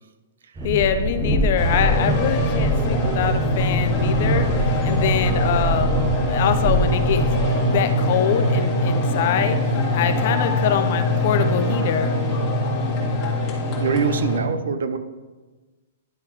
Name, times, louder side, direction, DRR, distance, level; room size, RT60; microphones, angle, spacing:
voice 1, 0.6-9.6 9.9-12.1, left 9 dB, 45° left, 9 dB, 0.5 m, -24 dB
Train, 0.6-7.4, equal, 10° right, 0.7 m, -25 dB
sound 1, 1.6-14.4, left 1 dB, 20° left, 1.5 m, -22 dB
voice 2, 13.7-15.0, right 6 dB, 85° right, 10 dB, 0.6 m, -24 dB
10.5 x 3.8 x 4.6 m, 1.2 s
hypercardioid pair, 165°, 0 cm